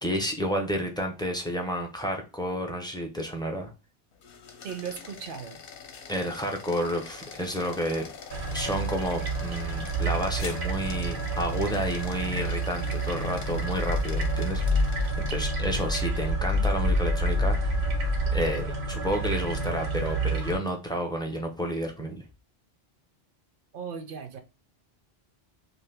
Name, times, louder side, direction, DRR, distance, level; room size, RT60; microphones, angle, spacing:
voice 1, 0.0-3.7 6.1-8.0 8.5-17.8 18.3-22.2, equal, 5° left, 0.3 m, -31 dB
sound 1, 4.1-15.9, left 6 dB, 65° left, 0.8 m, -45 dB
voice 2, 4.6-5.6 23.7-24.4, right 7 dB, 60° right, 0.7 m, -37 dB
sound 2, 8.3-20.6, right 1 dB, 80° right, 1.0 m, -28 dB
2.7 x 2.5 x 3.3 m
omnidirectional pair, 1.1 m